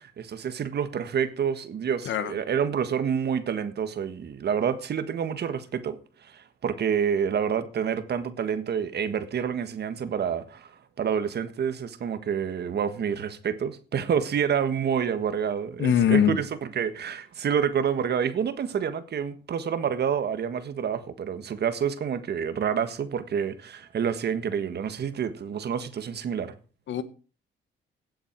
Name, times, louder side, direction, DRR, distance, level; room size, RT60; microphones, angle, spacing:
voice 1, 0.0-26.5, right 7 dB, 55° right, 1.6 m, -28 dB
voice 2, 15.8-16.4 26.9-27.0, left 9 dB, 70° left, 1.3 m, -22 dB
16.5 x 7.9 x 4.6 m
cardioid pair, 90°, 20 cm